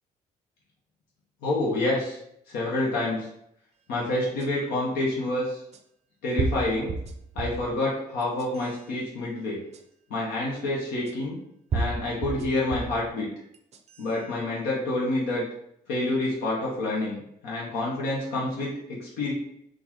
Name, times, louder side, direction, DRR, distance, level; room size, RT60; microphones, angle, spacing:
voice 1, 1.4-2.2 2.5-3.3 3.9-5.6 6.2-7.0 7.3-9.6 10.1-11.4 11.7-13.3 14.0-15.5 15.9-17.2 17.4-19.3, left 2 dB, 90° left, -4 dB, 0.8 m, -28 dB
sound 1, 4.4-4.5 5.7-5.8 6.4-7.7 8.2-8.8 9.7-9.8 11.1-11.2 11.7-13.0 13.5-14.1, right 3 dB, 45° right, 0.5 m, -31 dB
3.8 x 2.4 x 2.9 m, 0.73 s
cardioid pair, 80°, 16 cm